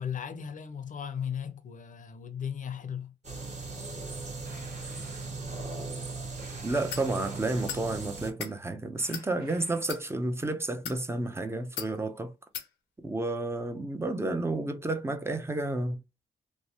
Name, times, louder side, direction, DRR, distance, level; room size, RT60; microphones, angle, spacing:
voice 1, 0.0-3.1, left 8 dB, 45° left, 0.7 m, -36 dB
sound 1, 3.2-8.3, right 3 dB, 40° right, 1.7 m, -38 dB
sound 2, 4.4-5.3 6.4-8.0 9.0-10.0, right 3 dB, 55° right, 1.3 m, -53 dB
voice 2, 6.6-12.3 13.0-16.0, right 2 dB, 15° right, 0.7 m, -31 dB
sound 3, 6.9-7.1 7.7-7.9 8.3-8.5 9.1-9.3 9.8-10.0 10.7-11.0 11.8-11.9 12.5-12.7, left 8 dB, 85° left, 0.8 m, -37 dB
3.1 x 2.2 x 2.9 m
supercardioid pair, 50°, 18 cm